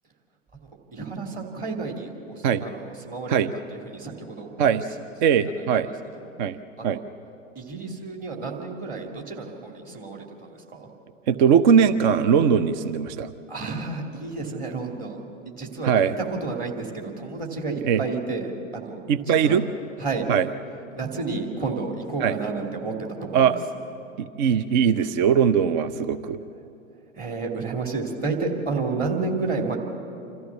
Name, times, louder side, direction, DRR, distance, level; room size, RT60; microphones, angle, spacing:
voice 1, 0.9-3.4 3.8-4.6 5.3-5.7 6.8-7.0 7.6-10.2 10.7-10.9 13.5-15.9 16.4-19.1 19.4-19.6 20.0-20.3 21.0-22.9 23.2-23.5 27.2-29.8, right 4 dB, 20° right, 1 dB, 2.7 m, -31 dB
voice 2, 5.2-5.9 6.4-6.6 6.8-7.0 11.3-13.3 15.8-16.1 17.8-18.0 19.1-19.7 20.3-20.5 22.2-22.3 23.3-23.6 24.2-26.4, right 7 dB, 35° right, 12 dB, 0.6 m, -20 dB
27.0 x 14.0 x 7.3 m, 2.8 s
figure-of-eight pair, 100°, 38 cm